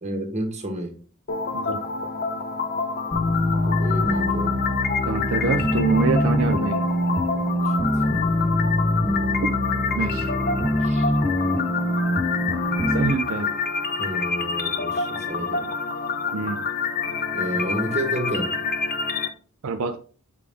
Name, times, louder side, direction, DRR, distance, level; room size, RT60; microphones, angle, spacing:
voice 1, 0.0-0.9 3.7-4.5 7.6-7.7 8.1-8.2 10.6-11.1 14.0-15.7 17.3-18.5, right 1 dB, 30° right, 1.4 m, -30 dB
sound 1, 1.3-19.3, left 5 dB, 45° left, 0.7 m, -27 dB
sound 2, 3.1-13.1, left 1 dB, 5° left, 0.9 m, -24 dB
voice 2, 5.1-6.9 10.0-10.3 12.9-13.5 16.3-16.6 19.6-20.0, right 4 dB, 65° right, 0.5 m, -25 dB
6.9 x 4.8 x 3.4 m
head